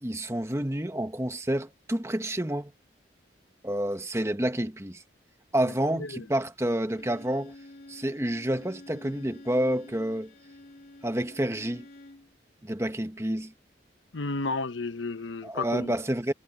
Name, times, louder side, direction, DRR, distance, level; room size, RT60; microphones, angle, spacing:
voice 1, 0.0-2.7 3.6-5.0 5.5-7.5 7.9-10.3 11.0-11.9 12.6-13.5 15.4-16.3, right 1 dB, 15° right, 1.2 m, -29 dB
Bowed string instrument, 6.9-12.3, left 1 dB, 50° left, 2.9 m, -49 dB
voice 2, 14.1-15.9, left 3 dB, 85° left, 1.1 m, -32 dB
head